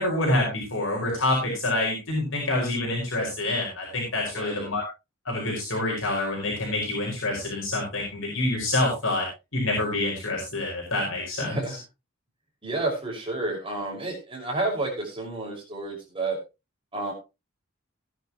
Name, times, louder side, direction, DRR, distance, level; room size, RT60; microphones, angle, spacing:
voice 1, 0.0-4.8 5.2-9.3 9.5-11.8, left 2 dB, 70° left, -2 dB, 5.0 m, -27 dB
voice 2, 4.3-4.7 11.4-11.8 12.6-16.4 16.9-17.1, right 2 dB, 25° right, 0 dB, 5.5 m, -30 dB
17.5 x 10.0 x 3.0 m, 0.27 s
head